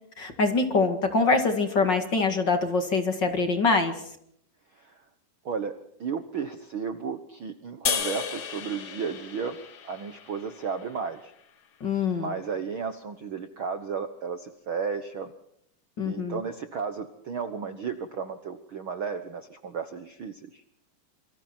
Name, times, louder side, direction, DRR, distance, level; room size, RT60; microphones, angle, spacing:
voice 1, 0.2-3.9 11.8-12.3 16.0-16.4, left 4 dB, 40° left, 6 dB, 2.3 m, -24 dB
voice 2, 4.7-5.0 5.4-5.7 6.0-9.6 9.8-11.3 12.1-15.3 16.0-20.6, right 6 dB, 55° right, 8 dB, 1.5 m, -33 dB
sound 1, 7.8-11.1, left 7 dB, 80° left, 0.9 m, -33 dB
28.0 x 25.5 x 4.5 m, 0.71 s
omnidirectional pair, 3.8 m